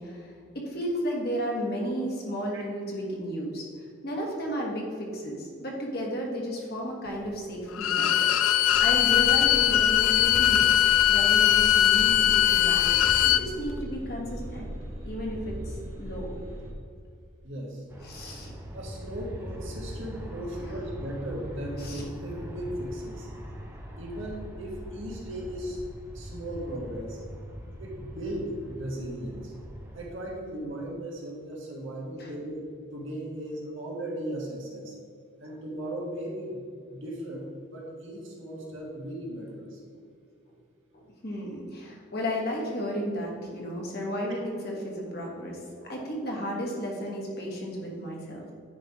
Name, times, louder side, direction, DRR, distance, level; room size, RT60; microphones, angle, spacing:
voice 1, 0.0-3.7 4.0-8.1 8.4-10.8 11.1-14.7 15.0-16.3 18.0-18.6 20.6-20.7 21.8-22.0 32.2-32.3 35.5-35.6 40.9-45.6 45.9-48.4, equal, 50° left, -1 dB, 1.4 m, -33 dB
Bowed string instrument, 7.7-13.4, left 11 dB, 80° left, 0.4 m, -21 dB
sound 1, 8.7-16.7, equal, 90° right, 1.1 m, -38 dB
voice 2, 17.4-17.8 18.7-23.3 24.0-25.8 26.1-27.2 27.8-29.5 29.9-32.6 32.9-35.0 35.4-36.6 36.9-39.8, right 1 dB, 70° right, -2 dB, 1.5 m, -37 dB
Aircraft, 17.9-30.1, equal, 10° right, 0.6 m, -41 dB
9.7 x 3.3 x 4.8 m, 2.2 s
head